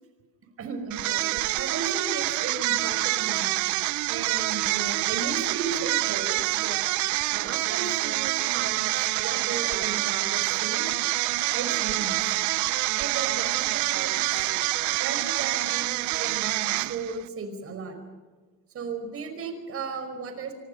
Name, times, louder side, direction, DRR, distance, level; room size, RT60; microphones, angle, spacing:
voice 1, 0.6-3.6 4.1-6.8 7.3-10.8 11.5-12.4 13.0-14.5 15.0-18.0 18.7-20.5, right 5 dB, 40° right, 7 dB, 5.3 m, -35 dB
sound 1, 0.9-17.2, right 18 dB, 60° right, 0.7 m, -27 dB
26.0 x 25.0 x 5.6 m, 1.4 s
cardioid pair, 140°, 34 cm